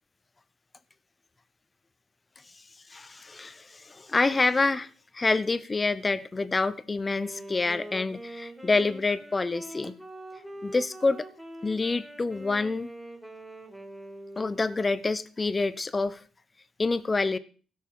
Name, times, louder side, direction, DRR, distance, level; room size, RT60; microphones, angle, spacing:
voice 1, 2.9-4.9 5.1-10.0 10.6-11.2 11.6-12.9 14.4-16.2 16.8-17.4, left 3 dB, 25° left, 0.9 m, -27 dB
Wind instrument woodwind instrument, 7.1-15.1, right 1 dB, 5° right, 3.4 m, -44 dB
16.5 x 6.5 x 5.6 m
cardioid pair, 90°, 0 cm